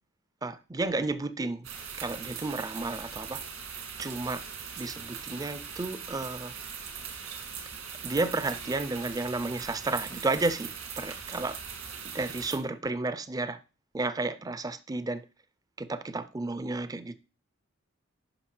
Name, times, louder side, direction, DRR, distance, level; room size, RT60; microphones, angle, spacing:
voice 1, 0.4-1.7 2.0-3.4 4.0-4.4 4.8-6.5 8.0-11.6 12.1-13.6 13.9-15.2 15.8-17.2, right 2 dB, 15° right, 0.4 m, -32 dB
sound 1, 1.6-12.6, right 6 dB, 75° right, 1.9 m, -40 dB
9.9 x 5.5 x 3.2 m
head